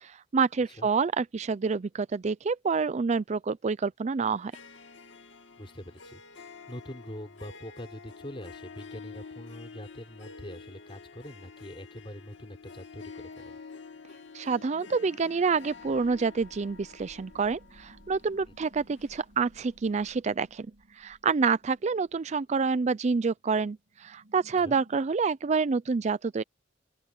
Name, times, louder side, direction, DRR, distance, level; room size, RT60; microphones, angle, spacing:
voice 1, 0.0-4.5 14.3-20.7 21.0-26.4, right 5 dB, 35° right, 0.4 m, -28 dB
Harp, 4.3-19.7, left 4 dB, 75° left, 2.6 m, -48 dB
voice 2, 5.6-6.2 6.7-13.6 18.5-18.6 24.6-24.8, equal, 30° left, 5.8 m, -44 dB
sound 1, 14.7-25.0, right 1 dB, 70° right, 3.5 m, -58 dB
open air
head